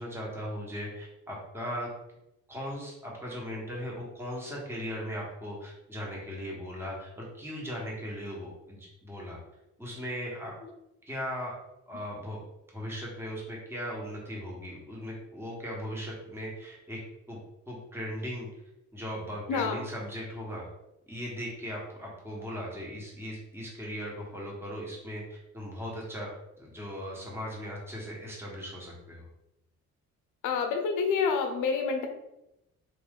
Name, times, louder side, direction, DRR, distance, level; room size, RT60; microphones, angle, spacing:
voice 1, 0.0-1.9 2.5-9.4 9.8-10.5 11.1-11.5 11.9-12.4 12.7-17.0 17.3-17.4 17.7-18.5 18.9-20.7 21.1-26.3 26.6-29.3, equal, 10° right, -3 dB, 1.2 m, -38 dB
voice 2, 19.5-19.8 30.4-32.1, left 5 dB, 90° left, 4 dB, 0.7 m, -28 dB
3.7 x 2.5 x 3.6 m, 0.87 s
cardioid pair, 90°, 30 cm